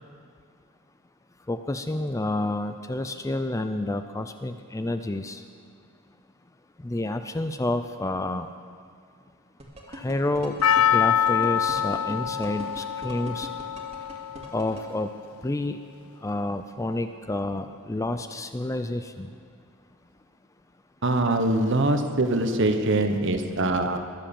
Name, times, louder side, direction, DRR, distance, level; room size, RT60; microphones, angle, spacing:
voice 1, 1.5-5.4 6.8-8.5 9.9-10.6 10.9-13.5 14.5-15.1 15.4-15.8 16.2-19.3, left 2 dB, 15° left, 9 dB, 0.4 m, -29 dB
sound 1, 9.6-14.8, right 1 dB, 30° right, 2.1 m, -40 dB
Percussion, 10.6-15.0 15.2-15.3, left 9 dB, 75° left, 0.5 m, -25 dB
voice 2, 21.0-24.0, right 2 dB, 55° right, 7 dB, 1.1 m, -23 dB
21.5 x 7.7 x 7.0 m, 2.2 s
head